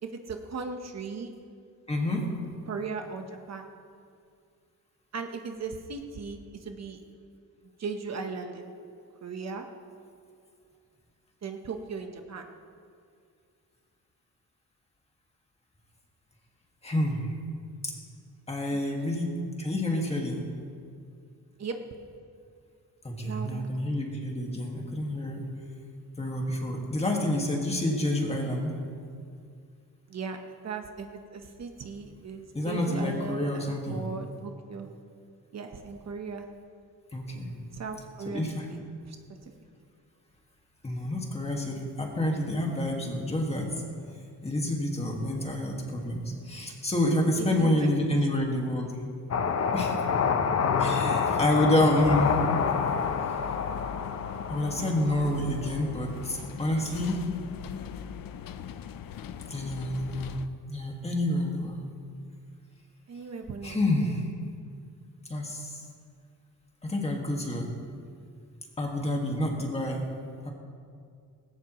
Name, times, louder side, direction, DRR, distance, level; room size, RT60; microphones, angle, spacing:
voice 1, 0.0-1.3 2.7-3.7 5.1-7.0 7.8-8.8 9.2-9.6 11.4-12.5 18.7-19.1 21.6-21.8 23.2-24.0 30.1-30.4 30.6-34.9 35.5-36.4 37.7-38.4 38.7-39.2 39.4-39.5 47.4-48.3 63.1-64.2, right 5 dB, 50° right, 4 dB, 1.1 m, -38 dB
voice 2, 1.9-2.3 16.8-17.3 17.8-17.9 18.5-19.3 19.6-20.4 23.0-25.4 26.2-28.8 32.5-34.0 37.1-37.6 38.3-38.7 40.8-43.7 44.4-48.9 49.7-50.0 50.8-52.4 54.5-57.3 59.5-60.4 60.7-61.8 63.6-64.2 65.3-65.8 66.9-67.7 68.8-70.0 70.5-70.6, left 1 dB, 20° left, 0 dB, 1.8 m, -28 dB
sound 1, 49.3-55.8, left 6 dB, 45° left, 0.8 m, -28 dB
sound 2, 52.0-60.5, left 8 dB, 80° left, 0.7 m, -40 dB
19.0 x 17.0 x 3.1 m, 2.2 s
wide cardioid pair, 180°, 33 cm